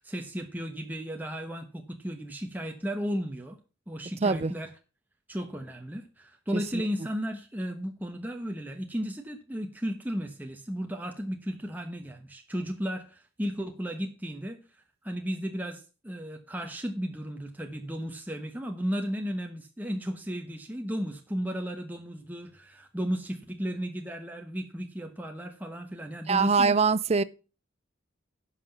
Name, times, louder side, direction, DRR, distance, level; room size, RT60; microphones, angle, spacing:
voice 1, 0.0-3.6 3.9-4.7 5.3-14.6 15.0-26.8, equal, 10° right, 1.0 m, -34 dB
voice 2, 4.2-4.5 6.5-6.8 26.3-27.2, right 4 dB, 30° right, 0.5 m, -23 dB
11.0 x 5.8 x 5.6 m
head